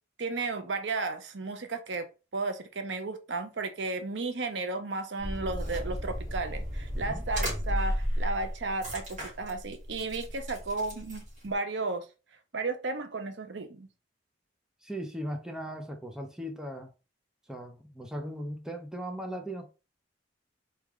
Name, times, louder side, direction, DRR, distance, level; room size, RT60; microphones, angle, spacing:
voice 1, 0.2-2.1 2.3-12.1 12.5-13.9, right 3 dB, 80° right, 0.7 m, -34 dB
sound 1, 5.2-11.5, equal, 40° right, 2.6 m, -34 dB
voice 2, 14.8-16.9 17.5-19.7, equal, 5° right, 0.7 m, -38 dB
4.3 x 3.4 x 3.6 m
head